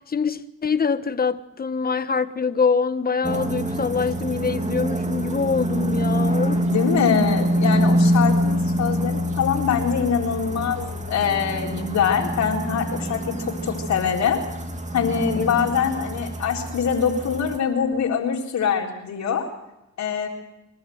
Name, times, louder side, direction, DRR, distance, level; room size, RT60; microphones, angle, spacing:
voice 1, 0.0-6.7 15.4-15.5, left 5 dB, 30° left, 1.2 m, -24 dB
sound 1, 3.2-17.6, equal, 25° right, 2.5 m, -25 dB
voice 2, 6.5-14.4 14.9-19.5 20.0-20.3, left 7 dB, 70° left, 4.0 m, -24 dB
27.5 x 12.5 x 7.9 m
cardioid pair, 80°, 29 cm